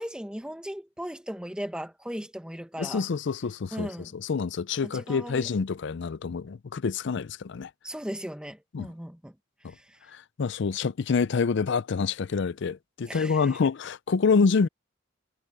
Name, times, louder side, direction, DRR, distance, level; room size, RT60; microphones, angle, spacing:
voice 1, 0.0-3.0 3.7-4.1 4.8-5.5 7.8-9.4 9.6-10.0 13.1-13.6, equal, 5° right, 1.1 m, -37 dB
voice 2, 2.8-7.7 8.7-8.9 9.6-9.7 10.1-14.7, left 5 dB, 60° left, 0.5 m, -27 dB
head